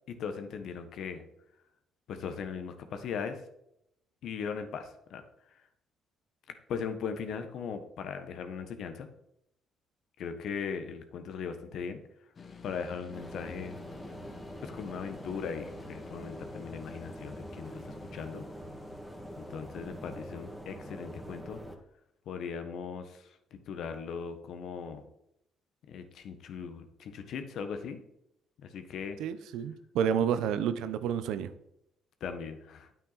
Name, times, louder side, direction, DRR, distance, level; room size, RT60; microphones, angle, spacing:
voice 1, 0.1-1.2 2.1-3.4 4.2-5.6 6.5-9.1 10.2-12.0 12.6-13.8 14.6-18.5 19.4-21.6 22.2-25.0 25.9-28.0 28.6-29.2 32.2-32.9, left 6 dB, 65° left, 8 dB, 1.3 m, -39 dB
sound 1, 12.4-21.4, left 5 dB, 45° left, 1.3 m, -53 dB
sound 2, 13.1-21.8, equal, 5° right, 2.0 m, -44 dB
voice 2, 29.2-31.5, right 8 dB, 70° right, 13 dB, 0.7 m, -30 dB
9.2 x 8.9 x 4.1 m, 0.78 s
hypercardioid pair, 50°, 0 cm